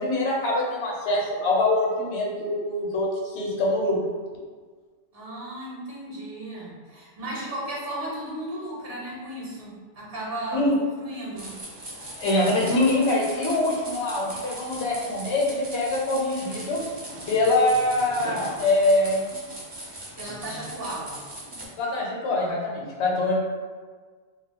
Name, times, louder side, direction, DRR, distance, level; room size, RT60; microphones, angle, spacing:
voice 1, 0.0-4.0 10.5-10.7 12.2-16.8 17.3-19.3 21.8-23.3, left 2 dB, 70° left, -2 dB, 0.9 m, -24 dB
voice 2, 5.1-11.6 20.2-21.2, right 1 dB, 55° right, -5 dB, 0.9 m, -35 dB
sound 1, 11.3-21.7, right 1 dB, 35° right, 0.4 m, -39 dB
2.4 x 2.2 x 3.5 m, 1.5 s
omnidirectional pair, 1.2 m